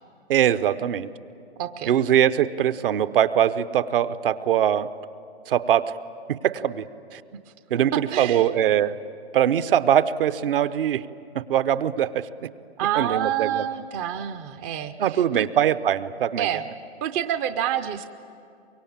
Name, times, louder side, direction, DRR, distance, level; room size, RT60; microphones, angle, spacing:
voice 1, 0.3-1.1 1.9-4.9 5.5-5.9 6.3-6.8 7.1-7.2 7.7-9.0 9.3-11.0 11.3-12.3 13.0-13.6 15.0-16.5, right 10 dB, 55° right, 13 dB, 0.9 m, -22 dB
voice 2, 1.6-1.9 7.9-8.5 12.8-15.5 16.4-16.6 17.0-18.1, right 10 dB, 20° right, 10 dB, 0.5 m, -28 dB
24.0 x 22.5 x 8.8 m, 2.4 s
hypercardioid pair, 130°, 33 cm